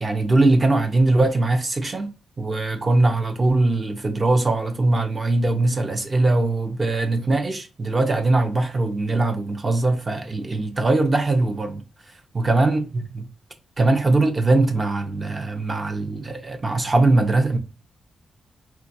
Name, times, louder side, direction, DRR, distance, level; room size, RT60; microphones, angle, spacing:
voice 1, 0.0-2.1 2.4-11.8 12.3-13.3 13.8-17.6, right 2 dB, 25° right, 0.6 m, -21 dB
3.8 x 2.3 x 2.6 m
wide cardioid pair, 130°, 0 cm